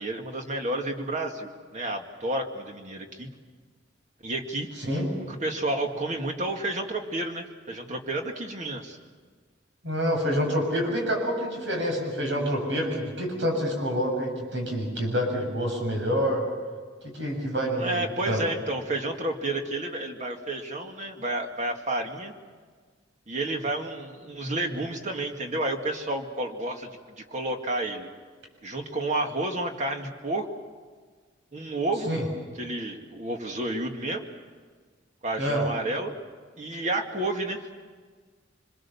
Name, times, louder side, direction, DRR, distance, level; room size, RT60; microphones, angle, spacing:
voice 1, 0.0-3.3 4.2-4.7 5.2-9.0 17.8-22.3 23.3-28.1 28.6-30.5 31.5-32.1 32.6-34.3 35.2-36.2 36.6-37.7, right 2 dB, 40° right, 3 dB, 2.1 m, -31 dB
voice 2, 9.8-16.4 17.0-18.4 32.1-32.3 35.4-35.7, equal, 70° right, 2 dB, 6.9 m, -27 dB
26.0 x 22.0 x 7.2 m, 1.5 s
head